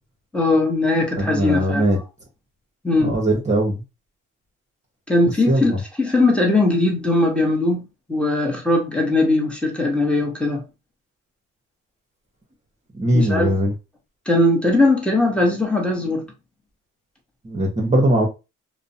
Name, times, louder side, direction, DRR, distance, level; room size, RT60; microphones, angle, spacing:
voice 1, 0.3-1.9 2.8-3.1 5.1-5.7 6.0-7.8 8.1-10.6 13.1-13.5 14.3-16.2, left 2 dB, 5° left, 0.9 m, -19 dB
voice 2, 1.2-2.0 3.0-3.8 5.5-5.8 12.9-13.7 17.4-18.3, right 1 dB, 25° right, 0.8 m, -20 dB
2.5 x 2.1 x 2.6 m
cardioid pair, 90°, 30 cm